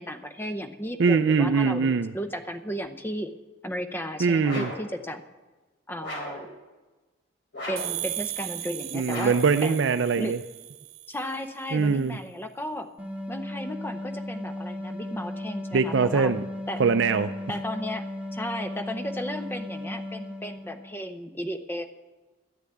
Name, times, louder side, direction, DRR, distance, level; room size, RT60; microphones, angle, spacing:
voice 1, 0.0-3.3 3.6-5.2 5.9-6.5 7.7-9.8 10.2-10.4 11.1-12.9 13.3-16.3 16.7-16.8 17.5-21.8, equal, 10° left, 9 dB, 0.6 m, -34 dB
voice 2, 1.0-2.1 4.2-4.7 8.9-10.4 11.7-12.2 15.7-16.5 16.8-17.3, right 5 dB, 60° right, 9 dB, 0.4 m, -22 dB
sound 1, 4.4-4.9 6.0-6.5 7.5-8.0 9.0-9.5, left 1 dB, 60° left, 3.8 m, -36 dB
sound 2, 7.8-11.3, right 13 dB, 80° right, 0.8 m, -36 dB
sound 3, 13.0-21.1, left 1 dB, 5° right, 1.7 m, -36 dB
12.5 x 7.0 x 9.2 m, 1.2 s
head